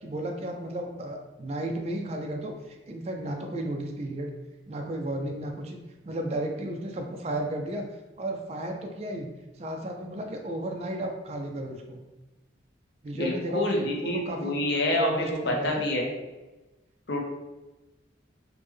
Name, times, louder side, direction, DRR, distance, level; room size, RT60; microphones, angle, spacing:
voice 1, 0.0-4.3 4.7-5.8 6.0-7.8 8.2-9.3 9.6-12.0 13.0-14.6 14.9-15.9, right 1 dB, 35° right, 2 dB, 0.4 m, -33 dB
voice 2, 13.1-16.1 17.1-17.2, left 1 dB, 60° left, 0 dB, 0.6 m, -27 dB
3.3 x 2.1 x 3.4 m, 1.1 s
head